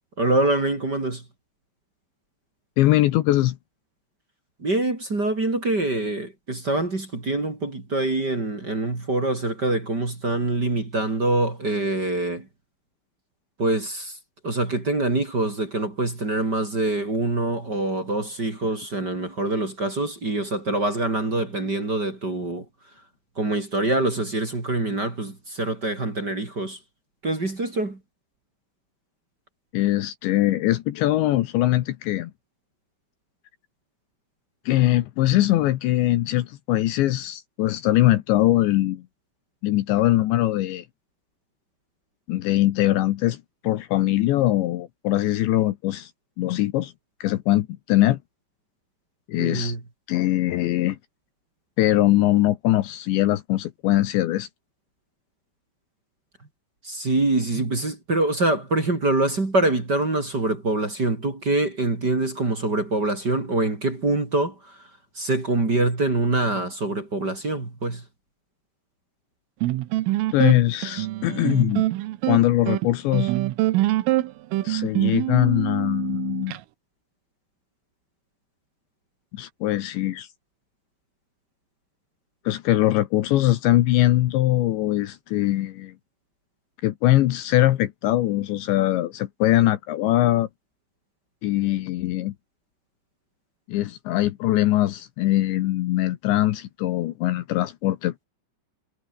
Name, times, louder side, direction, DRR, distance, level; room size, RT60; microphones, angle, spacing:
voice 1, 0.2-1.2 4.6-12.5 13.6-14.2 14.4-22.6 23.4-26.8 27.2-28.0 49.4-49.8 56.8-64.8 65.2-68.0, right 2 dB, 25° right, 3.5 m, -25 dB
voice 2, 2.8-3.6 29.7-32.3 34.7-39.0 39.6-40.8 42.3-46.1 46.4-46.9 47.2-48.2 49.3-49.7 50.1-51.0 51.8-54.5 70.3-71.8 72.3-73.3 74.6-76.6 79.3-80.3 82.5-85.9 86.8-90.5 91.4-92.3 93.7-98.2, left 15 dB, 75° left, 3.1 m, -22 dB
sound 1, 69.6-76.6, right 16 dB, 85° right, 3.8 m, -24 dB
omnidirectional pair, 5.8 m